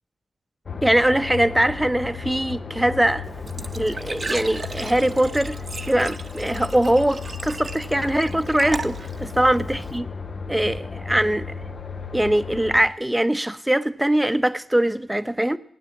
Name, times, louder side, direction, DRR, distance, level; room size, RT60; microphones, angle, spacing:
sound 1, 0.7-12.9, left 5 dB, 55° left, 1.0 m, -34 dB
voice 1, 0.8-3.2 3.7-5.6 5.9-10.1 10.5-11.5 12.1-15.6, right 1 dB, 10° right, 0.8 m, -22 dB
Glass / Trickle dribble / Fill (with liquid), 3.2-10.0, right 3 dB, 50° right, 0.9 m, -36 dB
17.5 x 9.3 x 7.2 m
cardioid pair, 50°, 0 cm